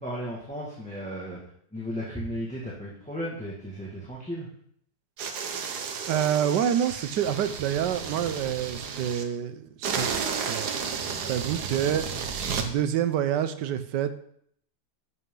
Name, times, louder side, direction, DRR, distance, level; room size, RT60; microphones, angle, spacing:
voice 1, 0.0-1.4 1.7-4.5, equal, 5° left, -6 dB, 1.7 m, -35 dB
sound 1, 5.2-9.2 9.8-12.7, right 6 dB, 70° right, 1.6 m, -32 dB
voice 2, 6.1-10.1 10.4-10.7 11.1-12.1 12.6-14.2, right 9 dB, 85° right, 11 dB, 1.4 m, -27 dB
11.0 x 8.1 x 3.8 m, 0.66 s
omnidirectional pair, 1.8 m